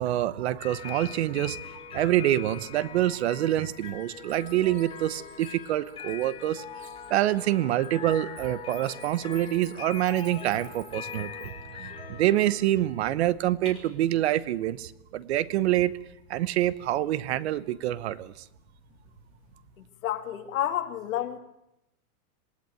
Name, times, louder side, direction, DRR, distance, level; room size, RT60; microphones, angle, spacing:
voice 1, 0.0-1.6 1.9-6.6 7.1-15.9 16.3-18.3, right 13 dB, 45° right, 18 dB, 1.0 m, -26 dB
sound 1, 0.6-19.6, left 7 dB, 10° left, 3.8 m, -43 dB
Bird, 2.5-2.6 3.0-6.5 6.7-11.5, right 4 dB, 15° right, 4.9 m, -53 dB
voice 2, 20.0-21.4, left 11 dB, 65° left, 6 dB, 2.9 m, -30 dB
26.5 x 19.0 x 9.1 m, 0.85 s
supercardioid pair, 170°, 44 cm